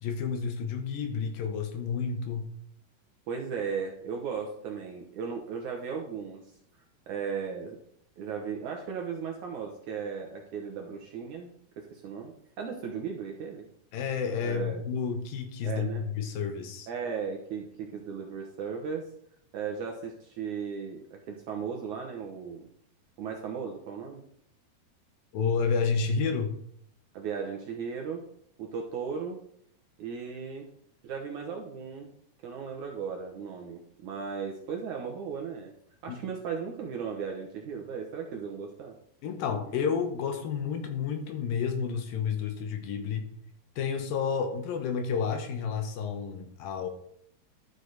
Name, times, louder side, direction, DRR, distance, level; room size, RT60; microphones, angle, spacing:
voice 1, 0.0-2.5 13.9-16.9 25.3-26.6 36.1-36.2 39.2-43.2 43.8-46.9, left 6 dB, 70° left, 5 dB, 2.6 m, -30 dB
voice 2, 3.3-6.4 7.1-7.8 8.2-11.5 11.8-13.7 14.4-14.8 15.6-16.0 16.9-19.1 19.5-22.7 23.2-24.2 27.1-28.2 28.6-29.4 30.0-30.7 31.0-32.1 32.4-35.7 36.0-39.0 39.7-39.8, right 6 dB, 70° right, 2 dB, 1.9 m, -36 dB
12.5 x 6.5 x 4.0 m, 0.66 s
omnidirectional pair, 4.6 m